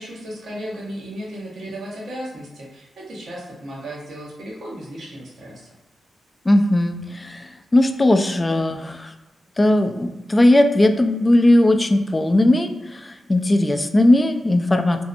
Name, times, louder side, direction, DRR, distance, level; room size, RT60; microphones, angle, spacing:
voice 1, 0.0-5.7, equal, 70° right, -4 dB, 0.7 m, -35 dB
voice 2, 6.5-9.1 9.6-15.0, left 1 dB, 25° left, 6 dB, 0.3 m, -18 dB
2.6 x 2.0 x 2.5 m, 1.1 s
supercardioid pair, 40°, 0 cm